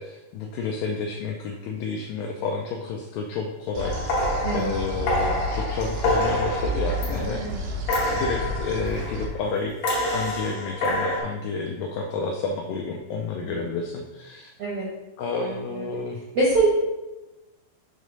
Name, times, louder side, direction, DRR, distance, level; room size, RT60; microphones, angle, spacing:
voice 1, 0.0-7.8 8.1-9.7 10.0-14.5 15.2-16.2, left 4 dB, 85° left, 1 dB, 2.0 m, -30 dB
sound 1, 3.7-9.3, left 1 dB, 85° right, 1.8 m, -32 dB
sound 2, 3.8-7.5 7.9-9.3 9.8-11.2, equal, 60° left, 2.1 m, -27 dB
voice 2, 16.3-16.7, right 3 dB, 70° right, -6 dB, 1.4 m, -24 dB
6.4 x 3.2 x 5.2 m, 1.1 s
omnidirectional pair, 4.7 m